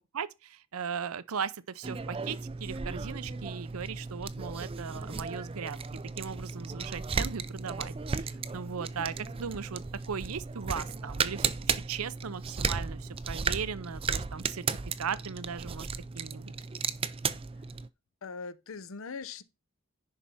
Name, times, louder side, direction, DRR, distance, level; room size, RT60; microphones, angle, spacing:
voice 1, 0.1-5.8 6.2-15.9 16.1-16.5, right 6 dB, 75° right, 0.6 m, -38 dB
sound 1, 1.8-17.9, right 5 dB, 25° right, 0.4 m, -35 dB
voice 2, 18.2-19.4, left 5 dB, 60° left, 0.7 m, -40 dB
10.5 x 4.3 x 5.6 m
head